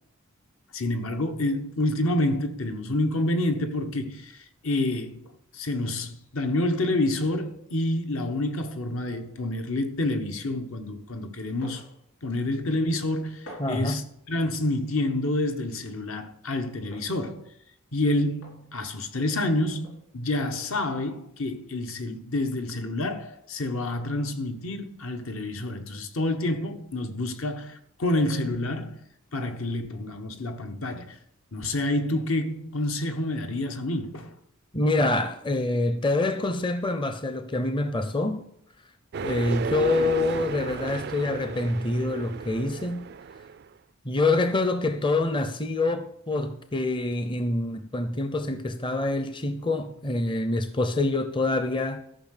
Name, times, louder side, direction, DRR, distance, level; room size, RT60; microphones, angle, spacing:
voice 1, 0.7-5.3 5.5-11.8 12.2-17.5 17.9-29.0 29.3-31.2 31.5-34.3, left 1 dB, 75° left, 1.3 m, -28 dB
sound 1, 11.6-11.9 12.3-12.4 13.4-13.9 15.0-15.2 16.9-17.3 18.4-18.6 19.8-20.0, equal, 60° left, 3.5 m, -45 dB
voice 2, 13.6-14.0 34.7-38.4 39.2-43.1 44.0-52.0, left 2 dB, 20° left, 0.6 m, -26 dB
sound 2, 39.1-43.7, right 5 dB, 50° right, 0.3 m, -34 dB
13.5 x 5.8 x 6.6 m
head